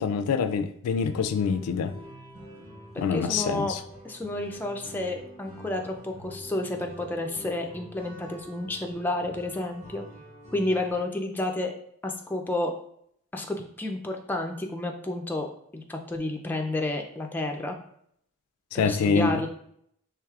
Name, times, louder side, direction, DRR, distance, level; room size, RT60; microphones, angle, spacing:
voice 1, 0.0-1.9 3.0-3.8 18.7-19.3, left 5 dB, 85° left, 0.3 m, -25 dB
sound 1, 1.0-11.0, equal, 30° right, 1.1 m, -46 dB
voice 2, 2.9-3.7 4.0-10.0 10.5-11.7 12.0-12.7 13.3-15.5 15.7-17.8 18.7-19.5, left 2 dB, 10° left, 0.3 m, -30 dB
4.7 x 3.2 x 2.3 m
head